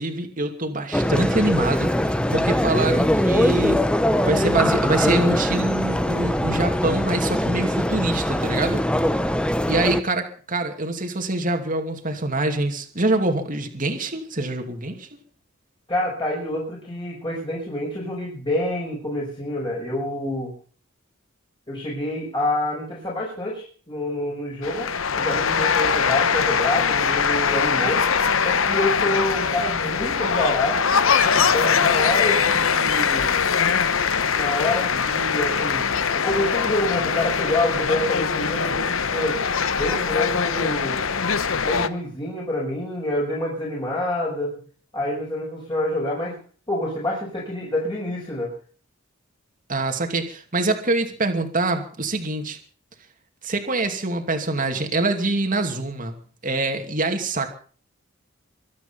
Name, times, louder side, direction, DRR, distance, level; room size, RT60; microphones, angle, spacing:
voice 1, 0.0-3.8 4.2-8.8 9.7-15.1 49.7-52.6 53.4-56.2 56.4-57.5, right 2 dB, 40° right, 5 dB, 2.6 m, -25 dB
sound 1, 0.9-10.0, equal, 5° left, 0.9 m, -22 dB
voice 2, 15.9-20.5 21.7-24.9 25.2-28.0 28.4-30.9 31.3-33.4 34.3-35.9 36.1-39.4 39.8-41.0 41.6-44.6 44.9-46.3 46.7-48.5, left 1 dB, 25° left, -4 dB, 5.6 m, -27 dB
sound 2, 24.6-41.9, left 6 dB, 70° left, 1.0 m, -22 dB
24.5 x 9.5 x 5.7 m, 0.43 s
head